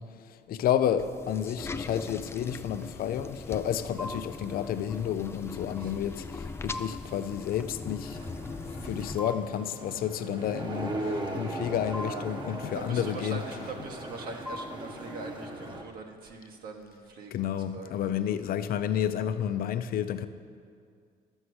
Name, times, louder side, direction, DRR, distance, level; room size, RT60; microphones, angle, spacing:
voice 1, 0.0-8.2 8.8-13.4 17.3-20.3, left 9 dB, 60° left, 0.6 m, -31 dB
sound 1, 1.0-9.2, left 3 dB, 15° left, 0.4 m, -40 dB
sound 2, 1.9-15.4, left 1 dB, 5° right, 0.9 m, -47 dB
sound 3, 8.0-15.8, right 1 dB, 25° right, 1.2 m, -38 dB
voice 2, 12.7-18.1, right 3 dB, 60° right, 1.5 m, -42 dB
11.5 x 7.2 x 7.9 m
cardioid pair, 110°, 17 cm